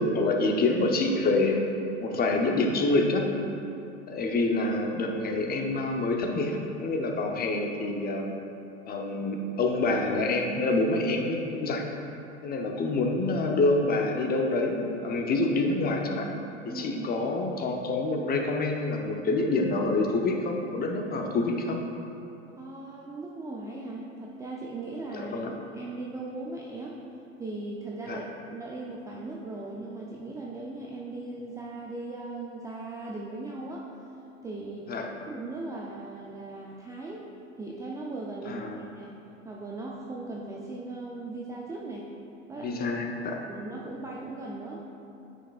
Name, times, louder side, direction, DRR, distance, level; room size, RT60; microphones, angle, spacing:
voice 1, 0.0-1.6 2.0-3.3 4.1-8.3 8.9-11.8 12.4-16.3 16.6-21.8 25.1-25.5 28.1-28.2 34.9-35.1 38.4-38.8 42.6-43.4, left 2 dB, 25° left, 2 dB, 0.8 m, -27 dB
voice 2, 16.7-17.1 22.6-25.4 25.7-27.0 27.4-33.9 34.4-34.9 35.3-37.3 37.6-39.2 39.4-42.1 42.5-42.9 43.5-44.8, right 2 dB, 10° right, -3 dB, 0.4 m, -38 dB
8.8 x 6.8 x 2.4 m, 2.7 s
hypercardioid pair, 95°, 38 cm